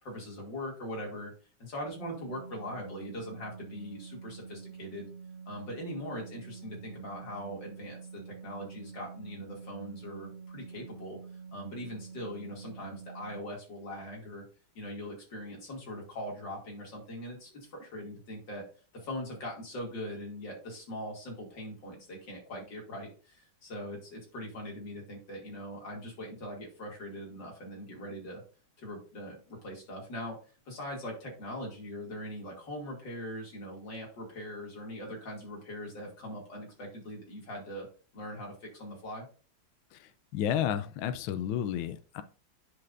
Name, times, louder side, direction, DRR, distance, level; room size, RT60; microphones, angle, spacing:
voice 1, 0.0-1.3 1.6-5.1 5.5-11.2 11.5-14.4 14.7-18.6 18.9-28.4 28.8-30.4 30.7-37.9 38.1-39.3, equal, 55° left, -1 dB, 3.2 m, -41 dB
sound 1, 2.0-13.4, right 5 dB, 55° right, 0.9 m, -47 dB
voice 2, 39.9-42.2, left 10 dB, 75° left, 11 dB, 1.3 m, -32 dB
9.7 x 5.8 x 2.6 m, 0.36 s
omnidirectional pair, 2.3 m